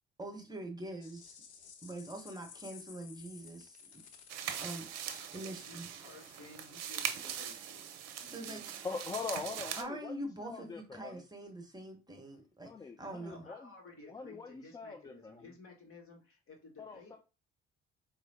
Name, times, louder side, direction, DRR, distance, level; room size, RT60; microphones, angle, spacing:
voice 1, 0.2-1.4 1.8-4.0 4.6-4.9 5.3-5.9 8.3-8.6 9.8-13.5, right 1 dB, 10° right, 3 dB, 1.0 m, -44 dB
sound 1, 1.0-6.9, left 6 dB, 85° left, 0.6 m, -56 dB
sound 2, 4.3-9.8, right 9 dB, 55° right, 0.7 m, -41 dB
voice 2, 5.2-7.9 8.2-8.7 13.3-17.2, left 3 dB, 40° left, 1 dB, 1.8 m, -55 dB
voice 3, 8.8-11.2 12.6-13.7 14.1-15.5 16.8-17.2, left 4 dB, 15° left, 5 dB, 0.3 m, -43 dB
4.8 x 2.7 x 2.7 m, 0.31 s
figure-of-eight pair, 50°, 33 cm